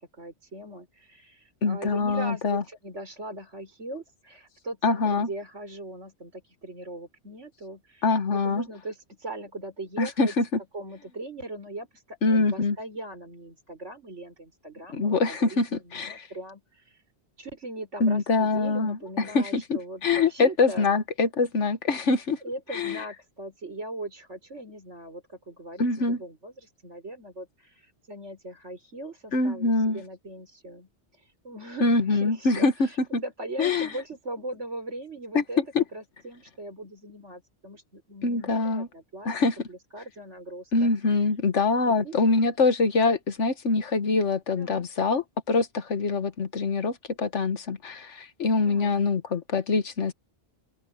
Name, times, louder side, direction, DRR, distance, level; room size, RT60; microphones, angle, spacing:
voice 1, 0.1-10.3 10.7-17.0 17.4-21.0 22.4-30.9 31.2-35.6 35.9-39.3 39.7-40.9 41.8-42.2 44.6-44.9 48.7-49.0, right 1 dB, 85° right, 5.7 m, -40 dB
voice 2, 1.6-2.6 4.8-5.3 8.0-8.6 10.0-10.4 12.2-12.8 14.9-16.3 18.0-22.4 22.7-23.0 25.8-26.2 29.3-30.0 31.8-32.7 33.1-33.2 33.6-33.9 35.3-35.8 38.2-38.9 39.2-39.7 40.7-50.1, left 3 dB, 85° left, 1.7 m, -24 dB
open air
omnidirectional pair, 1.2 m